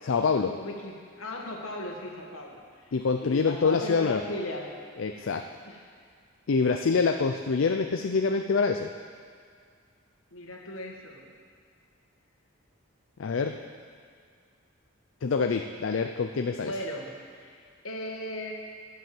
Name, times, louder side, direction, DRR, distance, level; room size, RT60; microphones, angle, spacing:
voice 1, 0.0-0.6 2.9-4.2 5.0-5.5 6.5-8.9 13.2-13.6 15.2-16.7, left 4 dB, 65° left, 6 dB, 0.4 m, -26 dB
voice 2, 0.5-2.9 3.2-4.7 5.6-5.8 10.3-11.2 16.6-18.5, left 1 dB, 85° left, 0 dB, 1.8 m, -37 dB
10.5 x 6.9 x 7.8 m, 2.2 s
head